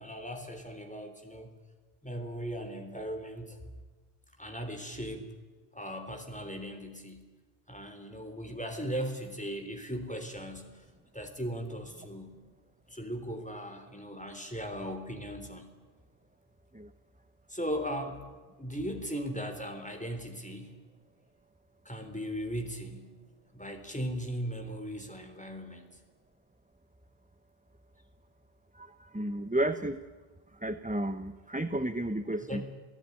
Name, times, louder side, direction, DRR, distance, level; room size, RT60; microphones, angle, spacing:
voice 1, 0.0-1.5 2.0-3.6 4.4-5.3 5.7-7.2 7.7-10.8 11.1-12.3 12.9-15.7 17.5-18.2 18.6-20.8 21.9-23.1 23.5-25.9 32.4-32.7, equal, 5° left, 5 dB, 3.6 m, -38 dB
voice 2, 28.8-30.0 30.6-32.7, right 1 dB, 10° right, 9 dB, 0.7 m, -32 dB
28.0 x 16.5 x 9.9 m, 1.3 s
omnidirectional pair, 1.1 m